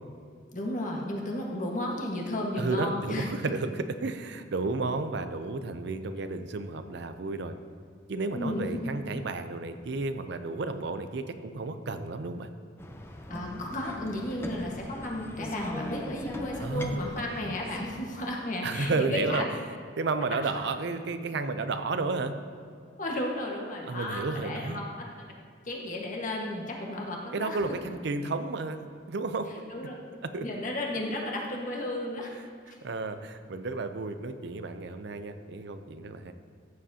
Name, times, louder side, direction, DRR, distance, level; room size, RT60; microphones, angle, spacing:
voice 1, 0.5-3.5 8.3-8.8 13.3-19.5 23.0-24.8 25.2-25.3 25.6-27.7 29.7-30.0 30.4-32.4 32.7-32.8, left 1 dB, 45° left, -1 dB, 1.5 m, -33 dB
voice 2, 2.6-7.5 8.1-12.5 16.6-17.0 18.6-19.4 20.0-22.4 23.9-24.8 27.3-29.5 30.2-30.5 32.7-36.3, right 3 dB, 65° right, 9 dB, 0.5 m, -32 dB
sound 1, 12.8-18.0, left 1 dB, 15° left, 0.6 m, -40 dB
14.0 x 7.6 x 2.8 m, 2.2 s
head